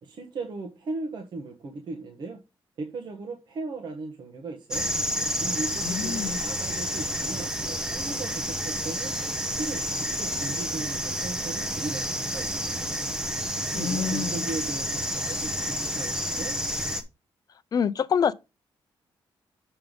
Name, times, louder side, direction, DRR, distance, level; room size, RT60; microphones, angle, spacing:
voice 1, 0.0-2.4 2.8-4.9 5.4-9.1 9.5-12.9 13.5-16.6, right 3 dB, 50° right, 1.3 m, -37 dB
sound 1, 4.7-17.0, equal, 10° right, 0.8 m, -30 dB
voice 2, 5.8-6.4 13.7-14.4 17.7-18.3, left 7 dB, 40° left, 0.5 m, -26 dB
6.8 x 3.8 x 5.3 m
wide cardioid pair, 165°, 10 cm